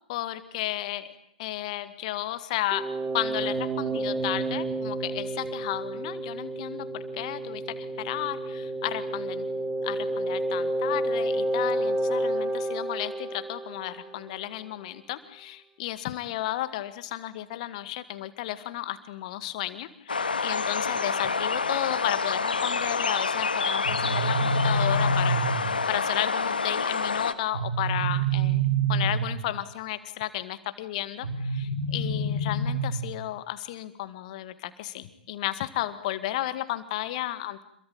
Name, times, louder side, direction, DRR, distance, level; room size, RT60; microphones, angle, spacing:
voice 1, 0.1-2.8 3.1-7.6 8.0-9.5 9.8-28.6 28.9-37.6, left 14 dB, 50° left, 12 dB, 2.0 m, -33 dB
sound 1, 2.7-14.3, right 1 dB, 15° right, 4.0 m, -30 dB
sound 2, 20.1-27.3, left 4 dB, 80° left, 1.7 m, -28 dB
sound 3, 23.8-25.9 27.5-29.6 31.2-33.2, right 3 dB, 70° right, 4.4 m, -27 dB
27.5 x 23.0 x 8.9 m, 0.68 s
figure-of-eight pair, 100°, 5 cm